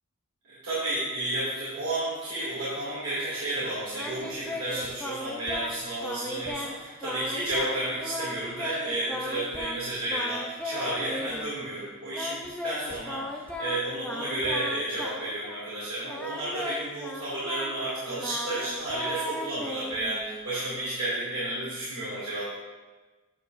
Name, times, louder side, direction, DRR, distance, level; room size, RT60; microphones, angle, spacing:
voice 1, 0.6-22.4, right 1 dB, 75° right, -11 dB, 2.5 m, -32 dB
Singing, 3.9-5.8 6.0-6.7 7.0-9.8 10.1-11.5 12.1-15.7 16.0-20.5, left 1 dB, 5° left, 0.5 m, -37 dB
9.0 x 7.0 x 2.6 m, 1.3 s
head